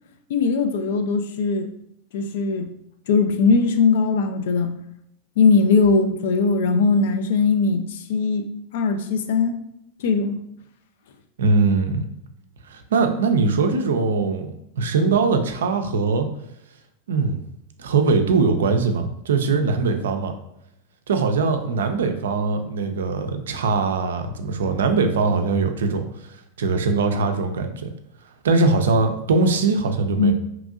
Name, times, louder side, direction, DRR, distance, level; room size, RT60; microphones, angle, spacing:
voice 1, 0.3-1.7 2.1-2.7 3.1-4.8 5.4-8.4 8.7-9.6 10.0-10.4 30.2-30.3, left 4 dB, 70° left, 8 dB, 0.3 m, -20 dB
voice 2, 11.4-12.0 12.7-16.3 17.1-17.4 17.8-20.3 21.1-26.3 26.6-27.9 28.4-30.3, right 4 dB, 75° right, 6 dB, 0.3 m, -21 dB
2.9 x 2.5 x 2.4 m, 0.78 s
hypercardioid pair, 95°, 0 cm